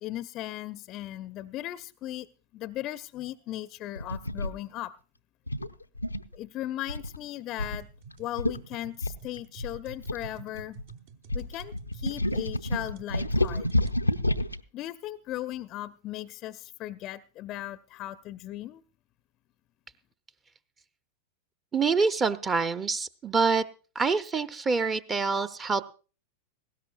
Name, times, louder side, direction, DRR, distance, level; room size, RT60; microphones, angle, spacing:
voice 1, 0.0-4.9 6.3-7.9 8.2-10.8 11.3-13.7 14.7-18.8, left 14 dB, 35° left, 0.5 m, -37 dB
sound 1, 4.0-4.5 5.5-6.4 6.9-7.2 7.6-7.8 8.1-8.2 8.4-8.6 9.0-10.8 11.3-14.6, left 1 dB, 85° left, 0.5 m, -29 dB
sound 2, 7.6-14.0, right 5 dB, 50° right, 1.1 m, -49 dB
voice 2, 21.7-23.6 23.9-25.8, right 4 dB, 20° right, 0.7 m, -26 dB
18.5 x 16.5 x 2.4 m
figure-of-eight pair, 90°, 0 cm